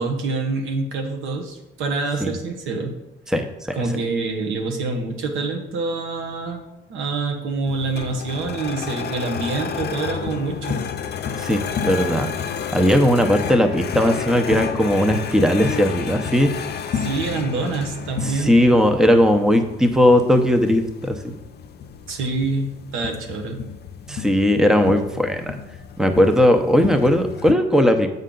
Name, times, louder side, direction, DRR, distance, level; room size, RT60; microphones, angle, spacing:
voice 1, 0.0-2.9 3.7-6.6 6.9-10.9 16.9-18.6 22.1-23.6 24.1-24.3, right 3 dB, 90° right, 3 dB, 1.3 m, -26 dB
voice 2, 3.3-3.7 11.4-12.3 12.7-16.5 18.2-21.4 24.1-25.6 26.0-28.1, equal, 5° right, 6 dB, 0.7 m, -18 dB
sound 1, 7.7-27.5, left 7 dB, 55° left, 0.6 m, -31 dB
7.4 x 5.5 x 3.9 m, 0.91 s
cardioid pair, 90°, 20 cm